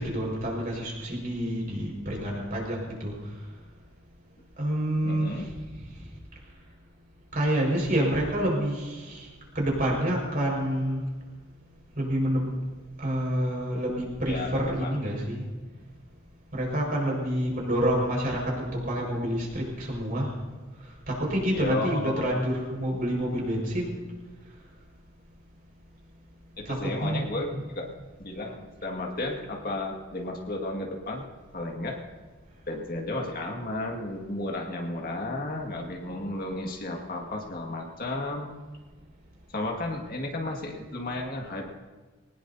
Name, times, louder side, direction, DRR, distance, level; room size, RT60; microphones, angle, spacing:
voice 1, 0.0-3.1 4.6-5.5 7.3-9.3 9.6-11.0 12.0-12.4 13.0-15.4 16.5-20.3 21.1-24.0 26.7-27.6, right 1 dB, 45° right, -1 dB, 5.2 m, -28 dB
voice 2, 5.0-5.5 14.3-14.9 21.5-22.4 26.6-27.9 28.2-31.2 31.5-32.0 32.7-38.5 39.5-41.7, left 2 dB, 45° left, 1 dB, 2.0 m, -33 dB
22.5 x 19.0 x 2.8 m, 1.3 s
head